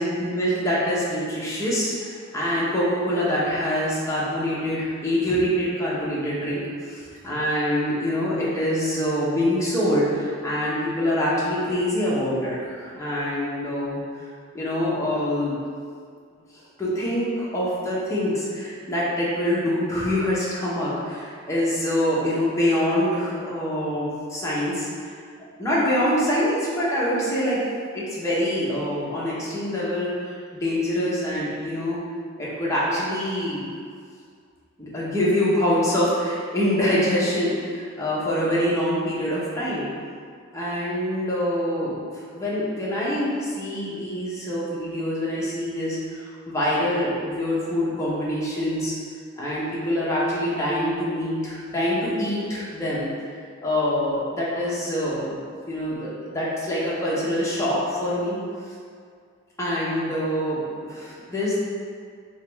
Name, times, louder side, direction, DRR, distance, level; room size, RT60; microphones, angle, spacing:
voice 1, 0.0-14.0 14.5-15.6 16.8-25.1 25.6-27.6 27.9-32.0 32.4-33.6 34.8-39.9 40.5-41.9 42.3-48.9 49.4-53.1 53.6-55.4 55.7-58.4 59.6-61.6, equal, 15° left, -8 dB, 0.9 m, -25 dB
3.7 x 3.0 x 3.4 m, 2.1 s
head